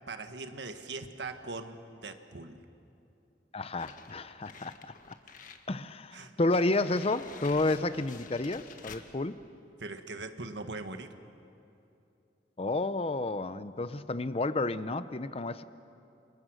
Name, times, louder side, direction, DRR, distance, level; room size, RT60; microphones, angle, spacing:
voice 1, 0.1-2.6 6.1-6.4 9.8-11.1, right 3 dB, 80° right, 7 dB, 1.5 m, -41 dB
voice 2, 3.5-4.9 5.7-9.4 12.6-15.6, left 2 dB, 35° left, 13 dB, 0.7 m, -31 dB
sound 1, 3.8-5.7 6.1-6.2 6.5-9.1, left 5 dB, 50° left, 1.6 m, -50 dB
28.5 x 28.0 x 6.4 m, 2.7 s
head